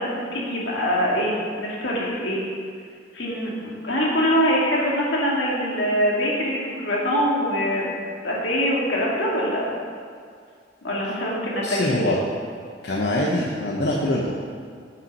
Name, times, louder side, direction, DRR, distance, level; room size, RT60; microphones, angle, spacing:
voice 1, 0.0-2.5 3.1-7.9 8.2-9.6 10.8-12.2, equal, 80° left, -4 dB, 2.1 m, -24 dB
voice 2, 11.6-12.2 12.8-14.4, left 1 dB, 60° left, -3 dB, 0.8 m, -23 dB
8.1 x 5.6 x 5.3 m, 2.2 s
head